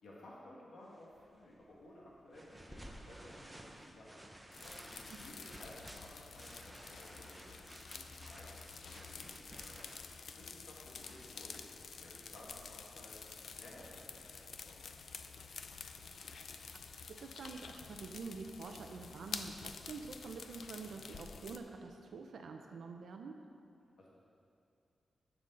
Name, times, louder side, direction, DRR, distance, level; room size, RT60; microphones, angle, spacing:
voice 1, 0.0-4.8 5.2-14.8 24.0-24.1, left 1 dB, 80° left, -6 dB, 1.9 m, -56 dB
sound 1, 0.9-14.6, right 1 dB, 10° right, 0.7 m, -56 dB
sound 2, 4.5-21.6, left 5 dB, 60° left, 0.5 m, -49 dB
voice 2, 15.4-15.8 16.1-16.7 17.1-23.4, right 4 dB, 75° right, 4 dB, 0.7 m, -48 dB
16.0 x 7.1 x 4.0 m, 2.5 s
wide cardioid pair, 170°, 0 cm